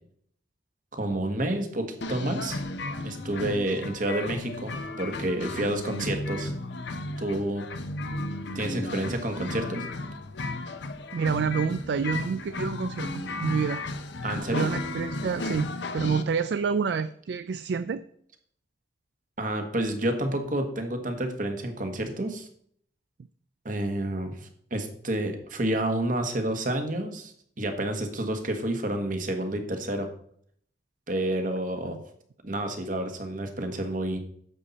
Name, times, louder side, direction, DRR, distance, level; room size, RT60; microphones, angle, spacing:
voice 1, 0.9-2.6 3.0-6.5 7.2-7.7 8.5-9.8 14.2-14.7 19.4-22.5 23.6-27.3 27.6-30.1 31.1-32.0 32.4-34.2, right 1 dB, 45° right, 5 dB, 1.5 m, -29 dB
sound 1, 2.0-16.2, left 2 dB, 70° left, 0.8 m, -34 dB
voice 2, 11.1-13.8 14.5-18.0 31.9-32.0, right 6 dB, 60° right, 12 dB, 0.3 m, -28 dB
10.0 x 7.4 x 4.1 m, 0.62 s
head